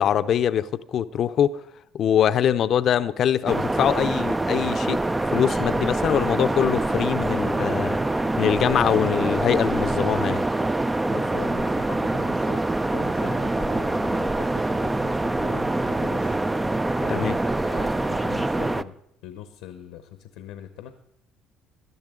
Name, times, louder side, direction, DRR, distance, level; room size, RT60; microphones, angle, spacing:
voice 1, 0.0-1.6 1.9-5.0 5.3-10.4 17.1-17.3, left 9 dB, 55° left, 0.6 m, -23 dB
sound 1, 3.5-18.8, right 2 dB, 15° right, 0.4 m, -25 dB
voice 2, 11.1-16.4 17.0-18.9 19.2-20.9, left 10 dB, 90° left, 1.0 m, -41 dB
18.0 x 12.0 x 3.8 m
cardioid pair, 105°, 0 cm